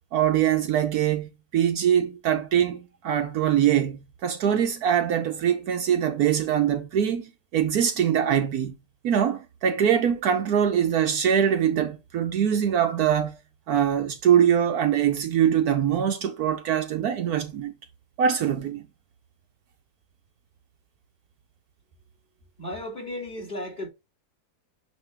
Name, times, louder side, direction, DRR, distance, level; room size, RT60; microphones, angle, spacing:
voice 1, 0.1-8.7 9.0-13.3 13.7-17.7 18.2-18.8, right 9 dB, 70° right, 1.2 m, -23 dB
voice 2, 22.6-23.9, left 1 dB, 25° left, 3.2 m, -34 dB
9.3 x 3.2 x 3.4 m
omnidirectional pair, 1.7 m